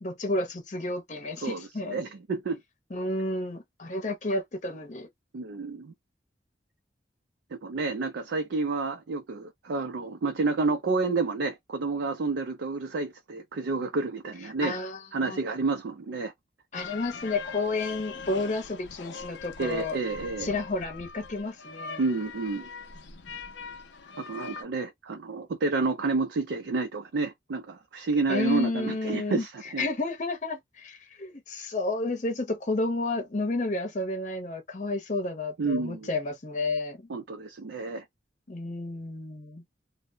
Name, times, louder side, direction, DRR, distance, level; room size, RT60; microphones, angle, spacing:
voice 1, 0.0-2.0 2.9-5.1 14.6-15.4 16.7-20.0 20.4-22.0 28.3-29.4 29.8-37.0 38.5-39.6, left 2 dB, 40° left, 0.7 m, -31 dB
voice 2, 1.4-2.6 5.3-5.9 7.5-14.8 15.1-16.3 19.6-20.5 22.0-22.7 24.2-29.9 35.6-36.1 37.1-38.0, right 3 dB, 80° right, 0.4 m, -30 dB
sound 1, 16.7-24.6, left 5 dB, 90° left, 0.5 m, -42 dB
2.1 x 2.0 x 3.7 m
head